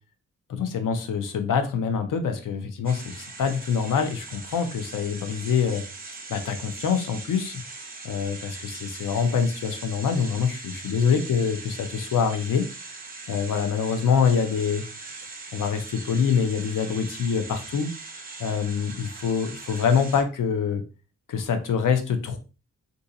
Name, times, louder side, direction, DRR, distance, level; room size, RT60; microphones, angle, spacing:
voice 1, 0.5-5.8 6.3-7.6 8.0-12.6 13.3-14.8 15.5-17.9 18.4-20.8 21.3-22.4, left 6 dB, 80° left, 7 dB, 0.6 m, -25 dB
sound 1, 2.8-20.2, right 3 dB, 30° right, 0.7 m, -40 dB
2.7 x 2.5 x 3.7 m, 0.33 s
wide cardioid pair, 125°, 31 cm